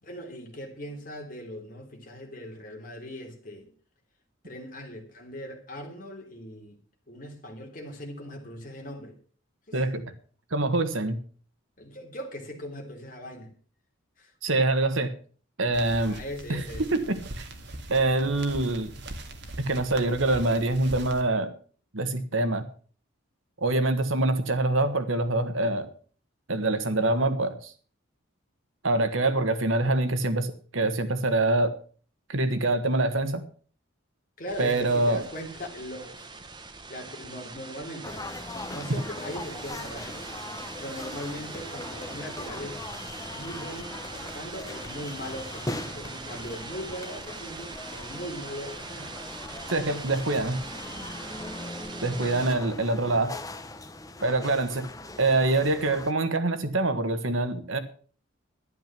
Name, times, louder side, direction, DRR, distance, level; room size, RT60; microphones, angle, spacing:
voice 1, 0.0-3.7 4.4-6.8 7.1-9.1 9.7-9.8 11.8-13.5 14.2-14.3 16.0-16.9 34.4-36.2 36.9-38.3 38.6-40.3 40.8-42.8 43.3-49.2 54.7-54.9, equal, 40° left, 3.1 m, -39 dB
voice 2, 9.7-10.1 10.5-11.2 14.4-15.1 15.6-16.2 16.5-16.6 16.9-17.5 17.9-18.9 19.6-21.5 21.9-22.7 23.6-25.9 26.5-27.7 28.8-31.7 32.3-33.4 34.6-35.2 49.7-50.6 52.0-53.3 54.2-54.8 55.2-57.8, right 2 dB, 70° right, 1.5 m, -25 dB
sound 1, 15.7-21.2, right 1 dB, 55° right, 1.9 m, -40 dB
sound 2, 34.5-52.6, right 3 dB, 20° right, 1.1 m, -42 dB
sound 3, 38.0-56.1, left 2 dB, 15° left, 0.8 m, -40 dB
12.0 x 10.5 x 6.0 m
head